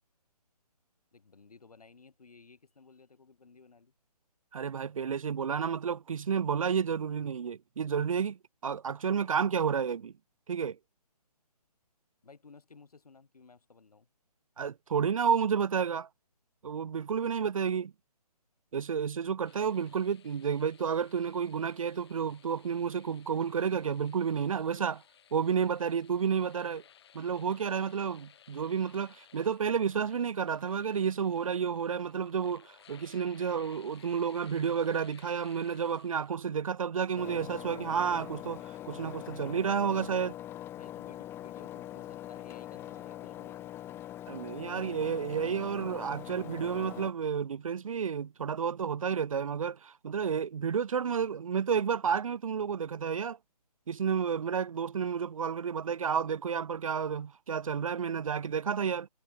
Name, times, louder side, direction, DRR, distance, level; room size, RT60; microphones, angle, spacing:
voice 1, 1.1-3.9 12.2-14.1 40.8-44.0 45.1-45.9, left 4 dB, 65° left, 6.9 m, -56 dB
voice 2, 4.5-10.1 10.5-10.8 14.6-16.1 16.6-17.9 18.7-25.0 25.3-26.8 27.1-40.3 44.3-53.4 53.9-59.1, right 7 dB, 55° right, 0.5 m, -31 dB
sound 1, 19.4-36.3, left 9 dB, 40° left, 8.0 m, -59 dB
Engine, 37.2-47.1, left 13 dB, 10° left, 1.2 m, -43 dB
figure-of-eight pair, 145°, 20 cm